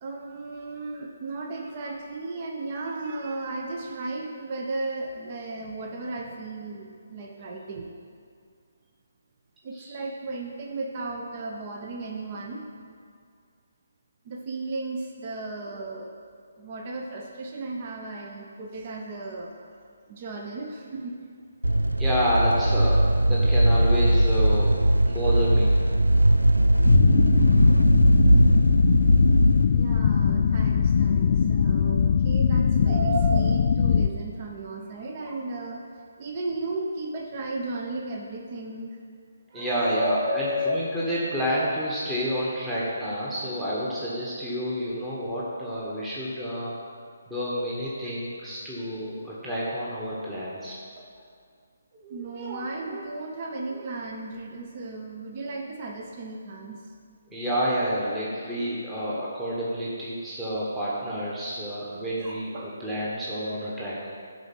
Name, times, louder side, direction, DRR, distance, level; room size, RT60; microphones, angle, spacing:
voice 1, 0.0-7.9 9.6-12.7 14.2-16.1 16.6-19.5 20.1-21.2 29.7-35.8 36.2-39.0 39.5-40.9 51.0-51.1 51.9-56.8 62.2-62.7, right 2 dB, 35° right, 1 dB, 0.8 m, -34 dB
sound 1, 21.6-30.0, right 1 dB, 85° right, 0.4 m, -20 dB
voice 2, 22.0-24.7 25.0-25.7 39.5-46.7 47.3-50.8 57.3-64.0, equal, 10° right, -8 dB, 1.3 m, -29 dB
sound 2, 26.8-34.1, left 7 dB, 45° left, 0.3 m, -21 dB
11.5 x 4.1 x 5.5 m, 2.2 s
figure-of-eight pair, 145°, 0 cm